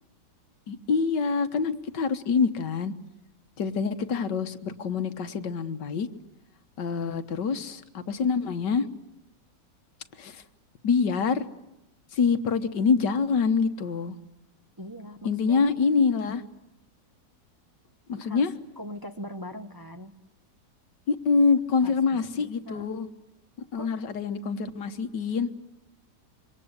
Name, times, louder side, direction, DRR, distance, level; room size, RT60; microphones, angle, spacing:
voice 1, 0.7-2.9 3.6-6.1 6.8-8.9 10.2-10.4 10.8-11.4 12.1-14.2 15.2-16.4 18.1-18.5 21.1-23.1 23.7-25.5, left 5 dB, 80° left, 9 dB, 1.9 m, -25 dB
voice 2, 14.8-15.6 18.2-18.4 18.8-20.1 21.8-22.2 22.6-22.9 23.7-23.9, equal, 15° right, 6 dB, 0.9 m, -40 dB
26.5 x 24.5 x 8.2 m, 0.90 s
omnidirectional pair, 1.8 m